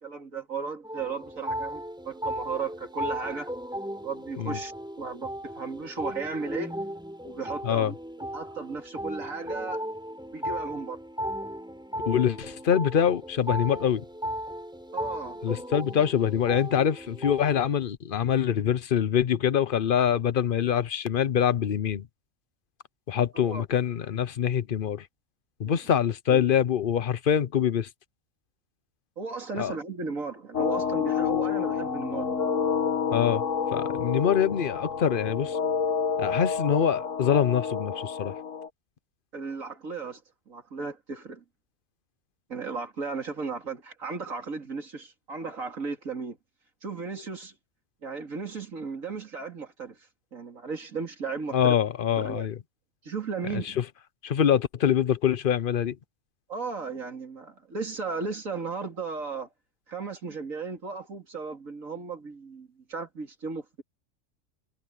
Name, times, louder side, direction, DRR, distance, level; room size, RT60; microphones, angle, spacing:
voice 1, 0.0-3.5 4.0-6.7 7.2-9.8 10.3-11.0 14.9-15.4 23.3-23.6 25.6-25.8 26.3-26.4 29.2-32.3 39.3-40.2 40.5-41.4 42.5-46.4 46.8-47.5 48.0-50.0 50.3-51.8 52.2-52.5 53.0-53.8 56.5-59.5 59.9-63.8, right 4 dB, 90° right, 3.4 m, -35 dB
sound 1, 0.8-17.6, equal, 5° right, 4.1 m, -36 dB
voice 2, 12.1-14.0 15.4-22.1 23.1-25.1 25.6-27.9 29.6-29.7 33.1-33.4 33.7-35.6 36.2-38.4 51.5-52.6 53.5-53.8 54.2-56.0, left 8 dB, 50° left, 0.8 m, -25 dB
sound 2, 30.5-38.7, left 6 dB, 70° left, 1.8 m, -28 dB
omnidirectional pair, 1.4 m